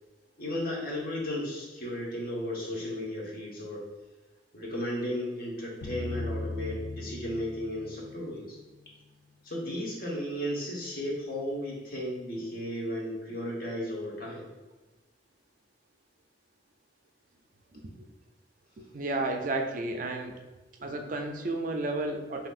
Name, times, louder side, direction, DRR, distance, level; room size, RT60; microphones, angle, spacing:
voice 1, 0.4-3.8 4.5-8.6 9.4-14.5, equal, 50° left, -3 dB, 1.1 m, -34 dB
sound 1, 5.8-8.9, left 2 dB, 75° left, 0.6 m, -38 dB
voice 2, 18.9-20.4 20.8-22.5, right 2 dB, 45° right, 4 dB, 0.4 m, -32 dB
5.9 x 2.8 x 2.4 m, 1.1 s
head